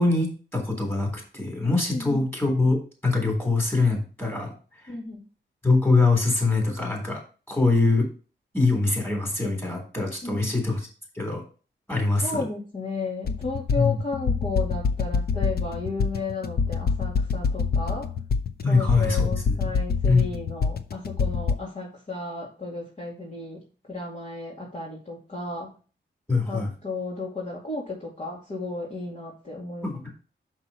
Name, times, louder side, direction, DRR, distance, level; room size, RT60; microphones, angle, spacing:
voice 1, 0.0-4.5 5.6-7.2 7.5-8.1 8.5-10.9 11.2-11.4 11.9-12.4 13.8-14.0 18.6-19.7 20.1-20.3 26.3-26.7 29.8-30.1, left 3 dB, 10° left, 1 dB, 3.6 m, -23 dB
voice 2, 1.9-2.2 4.9-5.3 10.2-10.5 12.2-18.1 18.7-23.6 23.9-25.7 26.5-30.1, left 3 dB, 40° left, -4 dB, 2.4 m, -33 dB
sound 1, 13.2-21.5, left 5 dB, 55° left, 0.7 m, -26 dB
6.2 x 5.9 x 4.2 m, 0.35 s
wide cardioid pair, 105°, 19 cm